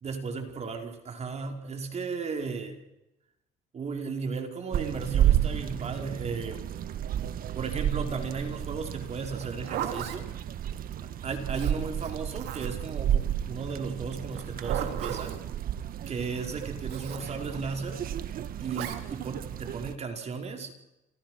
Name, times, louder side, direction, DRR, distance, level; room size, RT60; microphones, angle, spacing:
voice 1, 0.0-2.8 3.7-6.6 7.5-10.3 11.0-15.4 16.1-18.0 18.6-20.7, right 4 dB, 40° right, 4 dB, 4.8 m, -35 dB
sound 1, 4.7-20.0, right 11 dB, 60° right, 1.6 m, -32 dB
Zipper (clothing), 9.4-10.2 11.5-12.9 14.3-15.4 16.9-17.3 18.7-19.0, right 10 dB, 75° right, 3.3 m, -36 dB
29.5 x 27.5 x 6.3 m, 0.93 s
cardioid pair, 110°, 17 cm